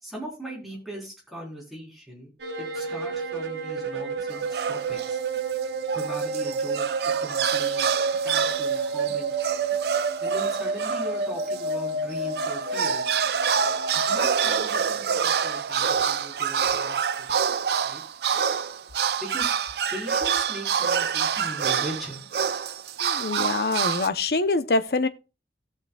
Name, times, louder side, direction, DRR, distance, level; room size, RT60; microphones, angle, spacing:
voice 1, 0.0-2.3 2.6-5.2 5.9-6.8 7.2-7.9 8.2-9.3 10.2-13.1 13.9-17.3 17.8-18.0 19.2-19.5 19.9-22.3, equal, ahead, 3.7 m, -39 dB
sound 1, 2.4-14.6, right 4 dB, 80° right, 1.2 m, -29 dB
sound 2, 4.3-5.2 5.6-11.7 12.1-24.1, right 7 dB, 65° right, 0.5 m, -27 dB
voice 2, 23.0-25.1, left 3 dB, 60° left, 0.7 m, -25 dB
17.5 x 6.5 x 2.3 m
head